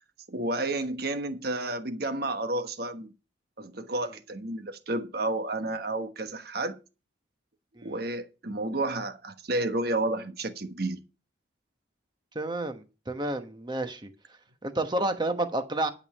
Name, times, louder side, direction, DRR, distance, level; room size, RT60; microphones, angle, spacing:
voice 1, 0.3-3.1 3.6-6.8 7.8-11.0, right 2 dB, 55° right, 1.2 m, -31 dB
voice 2, 12.3-14.1 14.6-15.9, right 2 dB, 25° right, 1.1 m, -30 dB
11.5 x 5.4 x 6.6 m
head